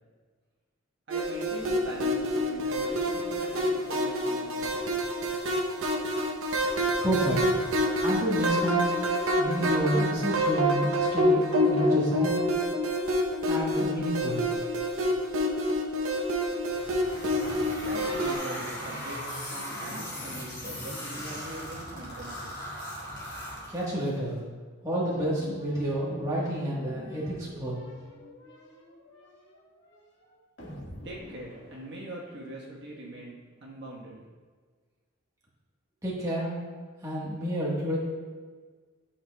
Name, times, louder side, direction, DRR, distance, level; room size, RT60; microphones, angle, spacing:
voice 1, 1.1-4.9 17.8-22.5 31.0-34.2, right 1 dB, 55° right, -4 dB, 1.3 m, -42 dB
sound 1, 1.1-18.4, equal, 75° right, 0.8 m, -27 dB
voice 2, 7.0-7.4 8.0-8.9 9.4-12.4 13.5-14.5 23.7-24.4 24.8-27.8 36.0-36.5 37.0-38.0, right 1 dB, 15° right, -6 dB, 1.3 m, -29 dB
sound 2, 16.6-24.1, equal, 20° left, 1.9 m, -38 dB
sound 3, 25.1-32.6, left 1 dB, 55° left, 1.7 m, -48 dB
11.0 x 5.7 x 2.3 m, 1.5 s
head